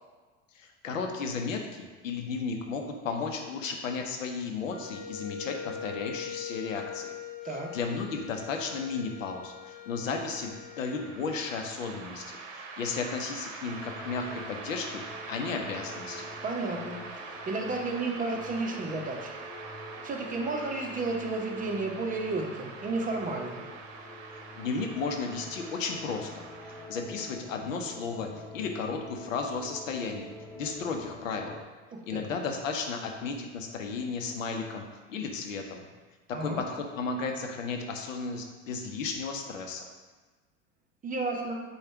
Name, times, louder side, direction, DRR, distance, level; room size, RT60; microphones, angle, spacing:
voice 1, 0.5-7.2 7.5-16.3 24.6-26.4 26.9-31.6 32.1-35.8 36.3-39.9, left 4 dB, 85° left, 3 dB, 0.7 m, -34 dB
Wind instrument woodwind instrument, 4.7-11.2, left 8 dB, 60° left, 1.1 m, -42 dB
sound 1, 10.5-26.9, right 4 dB, 70° right, 0.8 m, -44 dB
sound 2, 13.7-31.6, left 2 dB, 5° left, 0.4 m, -47 dB
voice 2, 16.4-19.3 20.0-23.7 31.9-32.2 36.3-36.6 41.0-41.5, right 3 dB, 20° right, 1 dB, 0.8 m, -32 dB
5.0 x 2.4 x 4.5 m, 1.3 s
hypercardioid pair, 85°, 38 cm